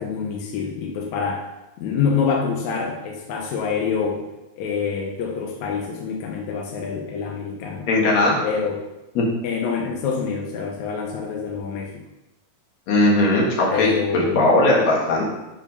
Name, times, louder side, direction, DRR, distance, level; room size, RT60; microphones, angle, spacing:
voice 1, 0.0-1.4 1.8-4.2 4.6-7.9 8.4-8.8 9.4-12.0 13.7-14.4, left 6 dB, 80° left, 0 dB, 1.6 m, -26 dB
voice 2, 7.9-8.4 9.2-9.3 12.9-15.2, left 2 dB, 55° left, -3 dB, 2.5 m, -18 dB
7.8 x 4.7 x 5.3 m, 0.98 s
omnidirectional pair, 4.4 m